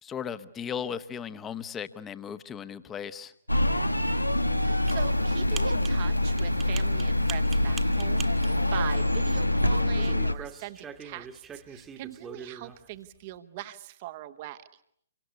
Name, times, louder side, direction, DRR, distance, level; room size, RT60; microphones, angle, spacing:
voice 1, 0.0-3.3, left 8 dB, 15° left, 14 dB, 1.2 m, -36 dB
sound 1, 3.5-10.3, left 1 dB, 85° left, 1.2 m, -25 dB
voice 2, 4.5-14.8, right 14 dB, 35° right, 11 dB, 1.2 m, -42 dB
sound 2, 4.9-9.5 9.8-12.9, right 7 dB, 15° right, 1.5 m, -44 dB
28.0 x 24.5 x 8.4 m, 0.67 s
figure-of-eight pair, 125°, 0 cm